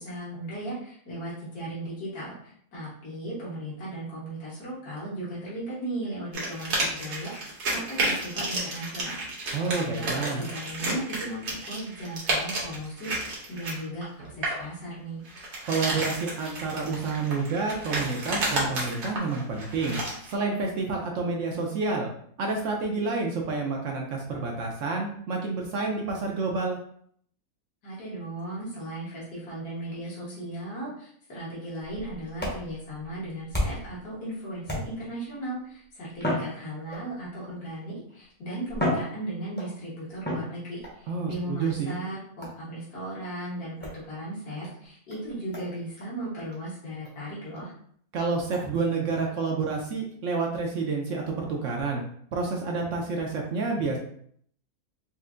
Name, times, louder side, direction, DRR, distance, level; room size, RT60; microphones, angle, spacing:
voice 1, 0.0-9.3 9.6-10.1 10.4-15.2 27.8-47.7, right 1 dB, 75° left, -8 dB, 1.8 m, -37 dB
sound 1, 6.3-14.7 15.3-20.3, right 2 dB, 85° right, 1.5 m, -31 dB
voice 2, 9.5-10.4 15.6-20.0 20.3-22.1 22.4-26.8 41.1-42.0 48.1-52.0 52.3-54.0, right 4 dB, 65° right, 0 dB, 0.8 m, -29 dB
sound 2, 31.8-34.0 34.6-35.2 36.1-37.2 38.1-38.2 38.7-39.8 40.2-41.0 42.4-42.7 43.8-44.0 44.6-44.7 45.1-45.2 45.5-45.7 46.0-46.1 46.5-46.6 47.0-47.1 47.5-47.6 48.5-48.7, left 1 dB, 10° left, 0.6 m, -32 dB
4.3 x 2.6 x 2.5 m, 0.63 s
omnidirectional pair, 1.7 m